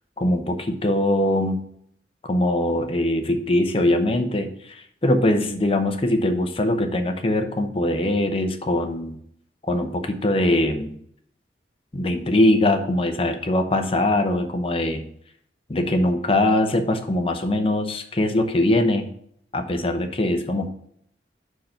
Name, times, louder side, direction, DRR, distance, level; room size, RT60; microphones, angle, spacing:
voice 1, 0.2-1.6 2.3-9.2 9.7-11.0 11.9-15.1 15.7-19.1 19.5-20.7, left 1 dB, 30° left, 5 dB, 0.8 m, -22 dB
5.8 x 4.6 x 6.4 m, 0.68 s
head